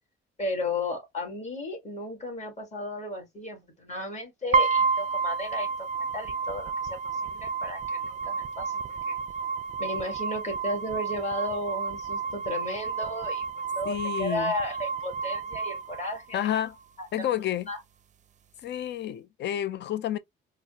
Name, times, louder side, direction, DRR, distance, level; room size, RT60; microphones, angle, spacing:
voice 1, 0.4-9.2 9.8-13.4 13.7-16.4 17.0-17.1 17.7-17.8, left 1 dB, 35° left, 1.8 m, -34 dB
sound 1, 4.5-16.5, right 5 dB, 40° right, 0.4 m, -30 dB
voice 2, 13.8-14.5 16.3-16.8 17.1-17.7 18.6-20.2, left 11 dB, 60° left, 0.5 m, -30 dB
4.0 x 2.1 x 2.8 m
cardioid pair, 90°, 20 cm